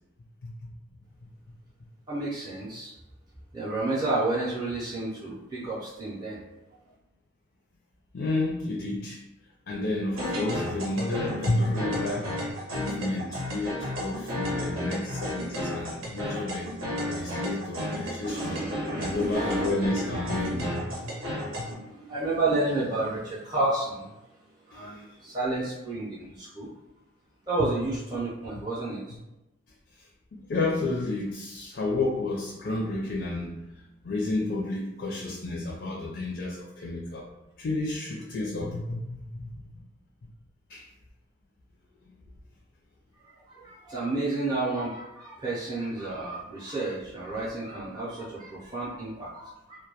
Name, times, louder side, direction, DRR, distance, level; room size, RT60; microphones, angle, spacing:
voice 1, 2.1-2.9 3.5-6.4 18.3-20.2 20.5-20.6 21.2-24.1 24.7-26.7 27.5-29.0 43.5-49.8, right 2 dB, 20° right, -10 dB, 0.5 m, -31 dB
voice 2, 8.1-9.2 9.7-12.4 12.8-16.7 17.1-18.6 19.0-21.3 24.7-25.2 30.0-30.1 30.3-33.6 34.0-37.3 37.6-39.7 40.7-40.8, left 2 dB, 55° left, -4 dB, 0.4 m, -31 dB
sound 1, 10.1-21.7, left 1 dB, 90° right, 0.7 m, -33 dB
2.2 x 2.1 x 2.8 m, 0.96 s
head